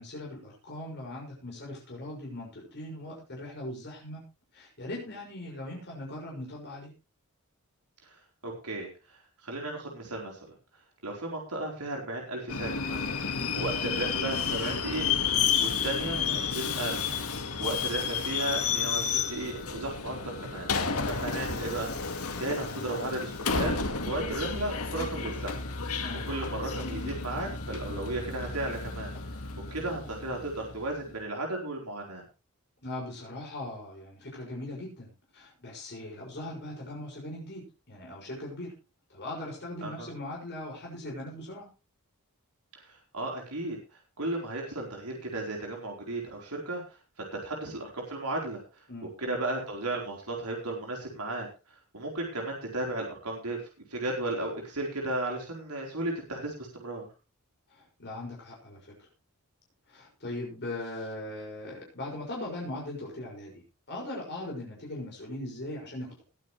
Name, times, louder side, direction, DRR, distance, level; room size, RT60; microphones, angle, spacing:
voice 1, 0.0-4.2 4.5-6.9 13.3-13.6 26.0-26.3 32.8-38.7 39.1-41.7 48.9-49.1 57.7-58.9 59.9-66.2, left 1 dB, 50° left, -2 dB, 6.3 m, -40 dB
voice 2, 8.4-8.9 9.4-10.4 11.0-13.0 13.5-15.1 15.6-17.0 17.6-20.7 21.1-21.9 22.4-25.6 26.2-29.1 29.7-32.2 39.8-40.1 42.8-43.8 44.2-46.8 47.2-48.6 49.2-51.5 51.9-53.6 53.9-57.1, right 2 dB, 85° right, 0 dB, 4.3 m, -34 dB
Subway metro underground, 12.5-30.9, left 6 dB, 70° left, 2.0 m, -31 dB
20.5 x 8.8 x 3.3 m, 0.30 s
head